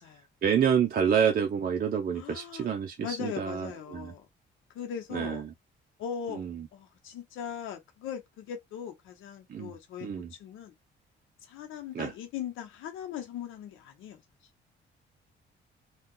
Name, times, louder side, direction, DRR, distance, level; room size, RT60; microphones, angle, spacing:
voice 1, 0.4-4.1 5.1-5.4 6.3-6.6 9.5-9.7 10.0-10.3 11.9-12.1, right 8 dB, 50° right, 0.6 m, -28 dB
voice 2, 2.1-2.7 3.0-4.3 4.7-5.5 6.0-6.4 6.7-10.7 11.4-14.2, left 8 dB, 90° left, 0.8 m, -39 dB
2.8 x 2.3 x 3.7 m
cardioid pair, 90°, 20 cm